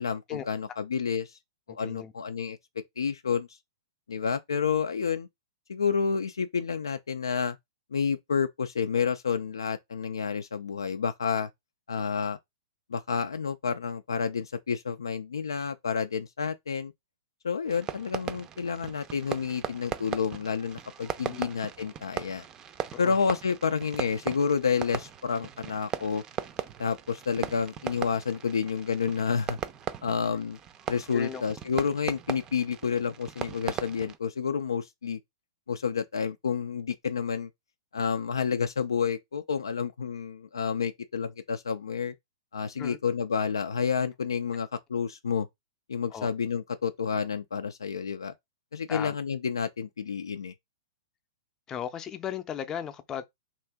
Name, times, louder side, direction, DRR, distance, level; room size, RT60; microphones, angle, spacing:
voice 1, 0.0-1.4 1.7-2.6 3.0-3.5 4.1-5.3 5.7-7.6 7.9-11.5 11.9-12.4 12.9-16.9 17.4-22.4 23.0-26.2 26.8-29.6 30.0-30.6 30.9-35.2 35.7-37.5 37.9-42.1 42.5-45.5 45.9-48.3 48.7-50.5, left 6 dB, 85° left, 0.3 m, -29 dB
voice 2, 1.7-2.1 21.3-21.5 22.9-23.2 31.1-31.4 42.8-43.0 46.1-46.3 48.9-49.2 51.7-53.2, left 9 dB, 25° left, 0.5 m, -36 dB
Fireworks, 17.7-34.2, right 9 dB, 25° right, 0.4 m, -38 dB
2.8 x 2.5 x 3.5 m
hypercardioid pair, 115°, 2 cm